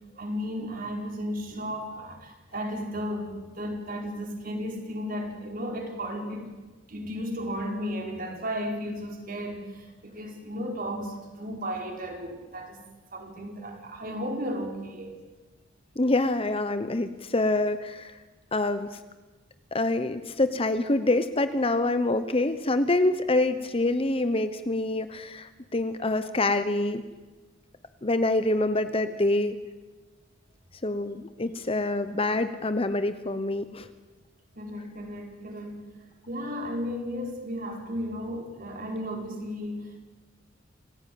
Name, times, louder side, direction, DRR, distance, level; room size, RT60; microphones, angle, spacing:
voice 1, 0.2-6.5 6.9-12.8 13.1-15.2 34.5-35.8 36.3-40.0, equal, 45° right, 2 dB, 4.7 m, -34 dB
voice 2, 16.0-18.2 18.5-18.9 19.7-27.0 28.0-29.6 30.8-33.9, left 2 dB, 30° left, 11 dB, 1.0 m, -26 dB
27.5 x 16.0 x 9.4 m, 1.2 s
head